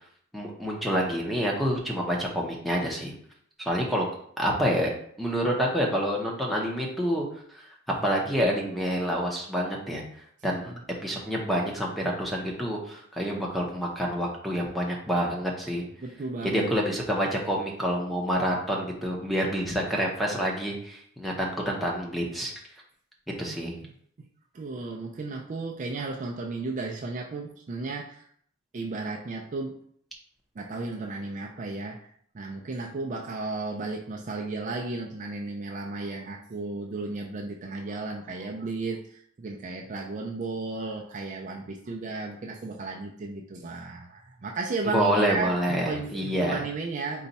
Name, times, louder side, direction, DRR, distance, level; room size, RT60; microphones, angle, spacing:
voice 1, 0.3-3.1 3.6-4.1 4.4-4.9 5.2-7.3 7.5-7.7 8.0-10.0 10.4-10.7 11.0-15.8 16.4-22.5 23.4-23.7 44.8-46.6, equal, ahead, -2 dB, 0.7 m, -27 dB
voice 2, 10.4-10.8 16.0-16.7 23.5-23.6 23.8-23.9 24.5-28.2 28.7-29.8 30.6-47.3, right 3 dB, 35° right, 1 dB, 0.4 m, -34 dB
4.0 x 2.3 x 4.0 m, 0.62 s
head